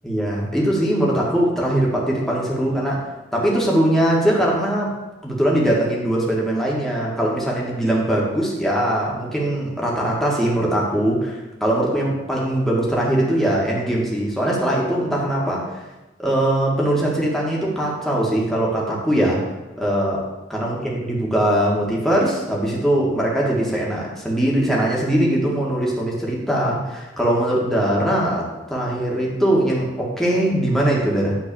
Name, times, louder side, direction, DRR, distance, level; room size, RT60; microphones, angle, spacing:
voice 1, 0.0-3.1 3.3-4.9 5.2-15.7 16.2-19.4 19.8-31.4, right 1 dB, ahead, -4 dB, 1.9 m, -21 dB
9.0 x 4.0 x 6.9 m, 1.1 s
head